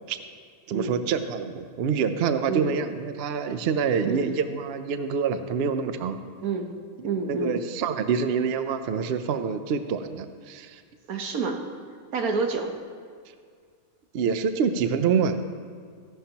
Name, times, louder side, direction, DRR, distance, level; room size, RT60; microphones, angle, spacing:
voice 1, 0.7-6.2 7.0-10.8 14.1-15.4, right 6 dB, 60° right, 9 dB, 0.7 m, -26 dB
voice 2, 2.5-2.8 4.0-4.3 6.4-6.7 7.0-7.6 11.1-11.6 12.1-12.7, right 4 dB, 90° right, 4 dB, 1.5 m, -28 dB
15.0 x 11.0 x 2.9 m, 2.1 s
omnidirectional pair, 1.5 m